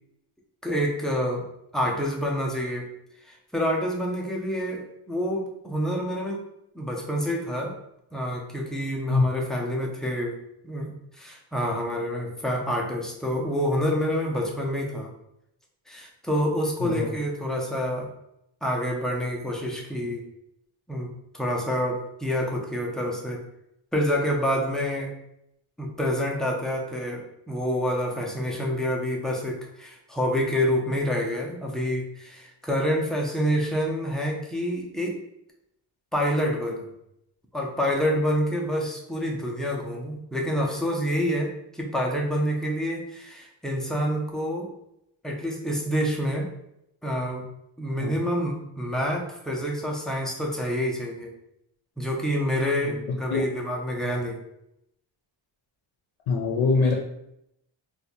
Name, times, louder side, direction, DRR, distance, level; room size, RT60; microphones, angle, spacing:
voice 1, 0.6-1.4 1.7-2.9 3.3-6.4 6.7-7.7 8.1-10.4 10.6-10.9 11.2-15.1 15.9-18.1 18.6-20.3 20.9-21.1 21.3-23.4 23.9-25.1 25.8-35.2 36.1-36.9 37.5-44.7 45.2-46.5 47.0-47.4 47.8-51.3 52.0-54.4, equal, ahead, -1 dB, 0.4 m, -27 dB
voice 2, 16.8-17.1 48.0-48.2 52.8-53.4 56.3-56.9, left 4 dB, 80° left, 0 dB, 0.7 m, -24 dB
2.6 x 2.3 x 4.1 m, 0.80 s
wide cardioid pair, 135°, 47 cm